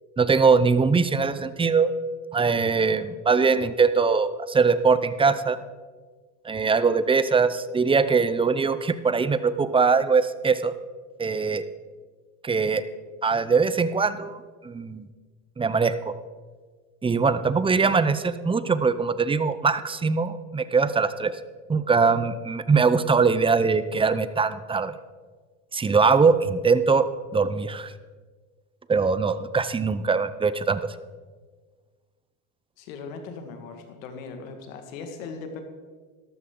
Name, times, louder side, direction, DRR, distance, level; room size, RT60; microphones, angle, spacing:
voice 1, 0.2-1.9 2.3-5.6 6.4-10.7 11.2-11.6 12.4-12.9 13.2-15.1 15.6-16.1 17.0-21.3 21.7-25.0 25.7-27.9 28.9-30.8, right 5 dB, 15° right, 13 dB, 0.6 m, -22 dB
voice 2, 32.8-35.6, left 4 dB, 90° left, 6 dB, 1.9 m, -39 dB
13.0 x 13.0 x 3.8 m, 1.5 s
supercardioid pair, 100°, 39 cm